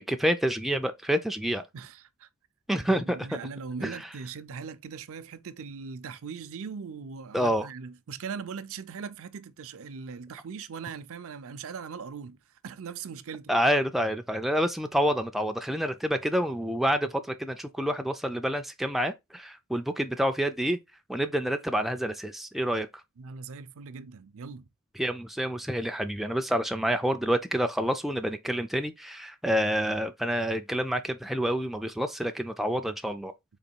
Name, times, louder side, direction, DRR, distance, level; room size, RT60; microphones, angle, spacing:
voice 1, 0.0-1.6 2.7-3.4 3.8-4.0 7.3-7.7 13.5-20.8 21.1-22.9 25.0-33.3, equal, ahead, 0.3 m, -28 dB
voice 2, 1.7-2.3 2.8-13.5 23.2-24.7, right 5 dB, 65° right, 0.5 m, -40 dB
3.9 x 3.0 x 4.4 m
head